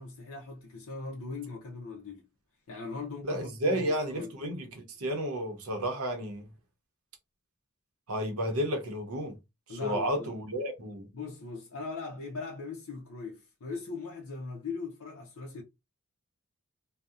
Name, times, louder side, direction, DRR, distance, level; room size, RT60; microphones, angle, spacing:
voice 1, 0.0-2.2 2.7-4.3 9.7-10.3 11.1-15.6, left 4 dB, 65° left, 0.5 m, -40 dB
voice 2, 3.2-6.5 8.1-9.3 9.7-11.1, equal, 75° right, 0.7 m, -32 dB
2.7 x 2.0 x 2.3 m
head